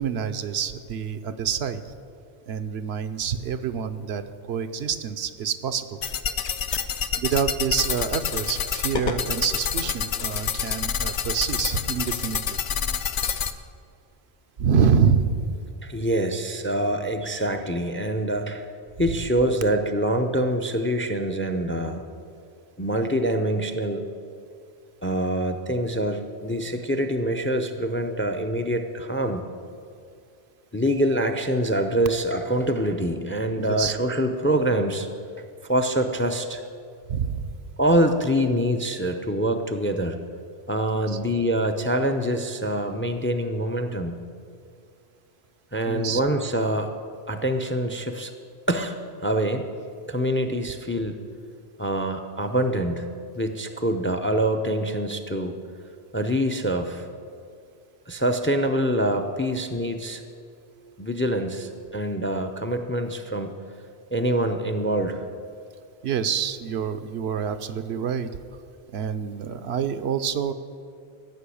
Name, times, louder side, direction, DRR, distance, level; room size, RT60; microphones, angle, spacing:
voice 1, 0.0-1.8 2.5-6.0 7.2-12.6 14.6-15.6 33.7-33.9 37.1-37.5 40.9-41.2 45.9-46.2 66.0-68.3 68.9-70.5, right 7 dB, 70° right, 10 dB, 0.9 m, -26 dB
sound 1, 6.0-13.5, left 7 dB, 55° left, 0.7 m, -27 dB
voice 2, 15.8-18.7 19.0-22.0 22.8-24.0 25.0-29.4 30.7-35.1 35.6-36.6 37.8-40.2 40.7-44.2 45.7-46.9 47.3-48.3 48.7-49.0 49.2-49.7 50.1-51.2 51.8-53.1 53.4-55.6 56.1-57.1 58.1-60.2 61.0-63.5 64.1-65.2, right 1 dB, 15° left, 7 dB, 0.5 m, -25 dB
15.0 x 6.2 x 8.5 m, 2.4 s
omnidirectional pair, 1.1 m